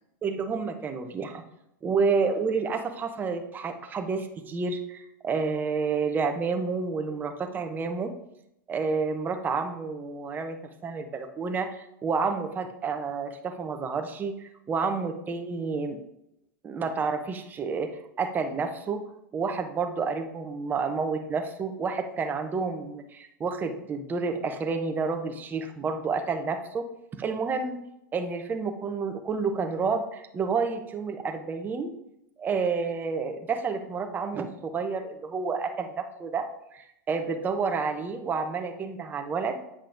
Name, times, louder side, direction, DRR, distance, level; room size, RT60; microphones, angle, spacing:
voice 1, 0.2-1.4 1.8-8.1 8.7-16.0 16.6-19.0 19.3-26.9 27.2-27.8 28.1-31.9 32.4-39.6, right 4 dB, 15° right, 5 dB, 0.6 m, -30 dB
8.4 x 5.5 x 2.5 m, 0.81 s
supercardioid pair, 140°, 11 cm